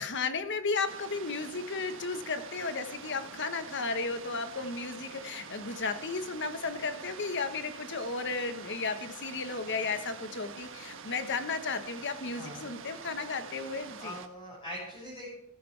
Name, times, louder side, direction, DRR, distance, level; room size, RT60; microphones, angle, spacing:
voice 1, 0.0-14.2, left 4 dB, 55° left, 9 dB, 1.3 m, -34 dB
sound 1, 0.9-14.3, right 5 dB, 60° right, 1.3 m, -46 dB
voice 2, 12.3-12.7 14.0-15.3, equal, 25° left, -6 dB, 7.0 m, -42 dB
15.0 x 15.0 x 3.4 m, 0.79 s
head